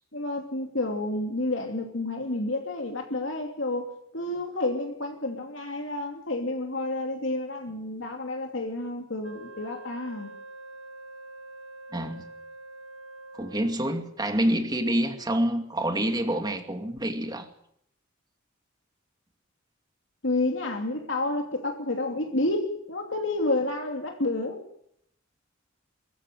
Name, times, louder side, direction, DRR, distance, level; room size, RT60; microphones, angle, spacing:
voice 1, 0.1-10.3 20.2-24.6, left 2 dB, 65° left, 2.9 m, -30 dB
Wind instrument woodwind instrument, 9.2-14.0, right 2 dB, 65° right, 1.4 m, -45 dB
voice 2, 11.9-12.2 13.3-17.5, right 1 dB, 20° right, 2.4 m, -27 dB
23.0 x 14.5 x 9.2 m
head